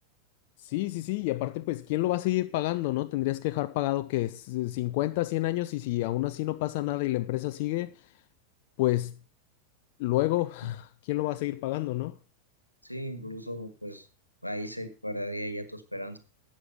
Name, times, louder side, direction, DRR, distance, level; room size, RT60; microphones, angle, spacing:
voice 1, 0.6-8.1 8.8-9.2 10.0-12.2, left 17 dB, 50° left, 0.6 m, -29 dB
voice 2, 12.8-14.1 14.4-16.2, equal, 90° left, 1.6 m, -36 dB
13.0 x 8.8 x 5.5 m
figure-of-eight pair, 90°, 0 cm